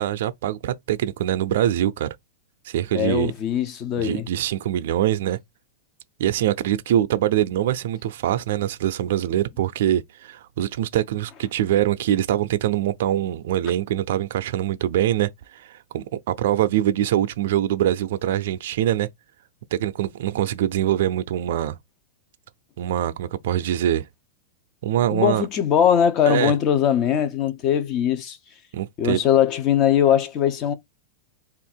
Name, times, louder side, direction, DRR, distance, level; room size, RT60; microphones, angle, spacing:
voice 1, 0.0-2.1 2.7-3.3 4.0-5.4 6.2-19.1 19.7-21.8 22.8-24.1 24.8-25.4 26.3-26.5 28.7-29.2, right 12 dB, 70° right, 0.4 m, -23 dB
voice 2, 2.9-4.3 25.1-28.4 29.0-30.7, left 9 dB, 35° left, 0.7 m, -20 dB
3.5 x 2.4 x 4.4 m
supercardioid pair, 150°, 0 cm